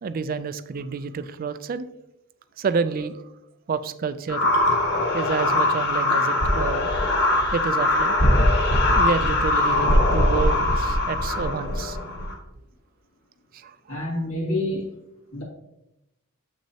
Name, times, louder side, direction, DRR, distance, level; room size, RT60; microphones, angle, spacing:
voice 1, 0.0-1.9 2.6-3.2 3.7-4.5 5.1-7.2 7.5-8.2 8.5-12.0 13.5-14.0, right 5 dB, 40° right, 13 dB, 0.3 m, -29 dB
sound 1, 4.3-12.3, left 1 dB, 55° left, 1.2 m, -21 dB
voice 2, 13.9-14.9 15.3-15.4, left 1 dB, 85° left, -2 dB, 2.4 m, -28 dB
7.4 x 6.1 x 2.8 m, 0.88 s
head